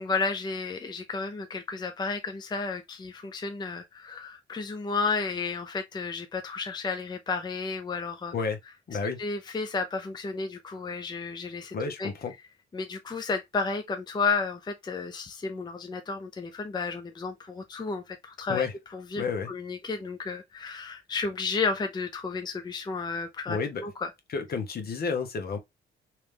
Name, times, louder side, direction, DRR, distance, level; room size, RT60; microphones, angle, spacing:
voice 1, 0.0-8.3 9.0-12.1 12.7-18.7 18.9-24.1, left 4 dB, 20° left, 0.5 m, -32 dB
voice 2, 8.9-9.2 9.5-9.6 11.7-12.3 18.5-18.7 19.2-19.5 23.5-23.8 24.3-25.6, left 5 dB, 50° left, 1.0 m, -31 dB
3.2 x 3.1 x 3.3 m
cardioid pair, 90°, 20 cm